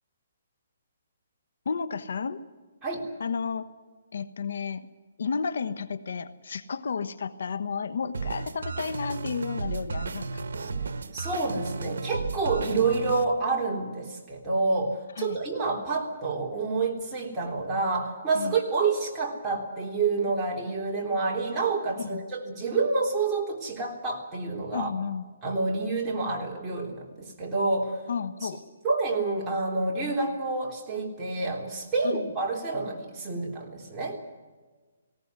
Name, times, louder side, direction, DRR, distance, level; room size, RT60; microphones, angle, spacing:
voice 1, 1.6-2.4 3.2-3.7 4.1-4.8 5.2-10.4 15.2-15.4 18.3-18.5 22.0-22.2 24.7-25.2 28.1-28.6 32.0-32.3, left 5 dB, 70° left, 12 dB, 1.1 m, -32 dB
sound 1, 8.1-13.2, right 4 dB, 70° right, 1.5 m, -34 dB
voice 2, 11.1-24.9 25.4-28.0 28.4-28.5 28.8-34.2, right 3 dB, 15° right, -3 dB, 3.6 m, -28 dB
19.0 x 17.5 x 9.6 m, 1.3 s
hypercardioid pair, 160°, 0 cm